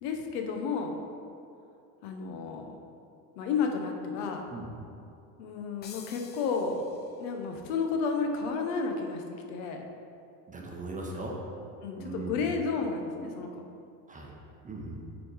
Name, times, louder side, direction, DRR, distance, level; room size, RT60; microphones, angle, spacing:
voice 1, 0.0-0.9 2.0-2.8 3.4-4.4 5.4-6.8 7.2-9.2 9.5-9.9 11.8-13.6, left 5 dB, 85° left, 3 dB, 0.9 m, -32 dB
sound 1, 5.8-7.4, left 6 dB, 25° left, 0.4 m, -50 dB
voice 2, 10.5-11.4 12.0-12.3 14.1-14.3 14.6-15.0, right 2 dB, 15° right, -1 dB, 0.9 m, -38 dB
6.2 x 4.2 x 4.7 m, 2.6 s
supercardioid pair, 115°, 46 cm